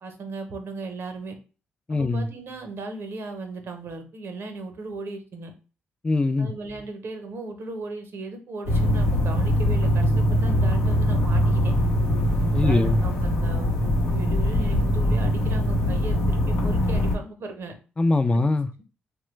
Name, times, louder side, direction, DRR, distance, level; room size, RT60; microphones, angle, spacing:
voice 1, 0.0-1.4 1.9-5.5 6.4-11.7 12.5-17.7, right 3 dB, 60° right, 0.7 m, -37 dB
voice 2, 1.9-2.3 6.0-6.5 12.5-13.0 18.0-18.7, left 2 dB, 25° left, 0.4 m, -22 dB
sound 1, 8.7-17.2, equal, 85° left, 0.7 m, -22 dB
3.0 x 2.2 x 3.1 m
hypercardioid pair, 50°, 4 cm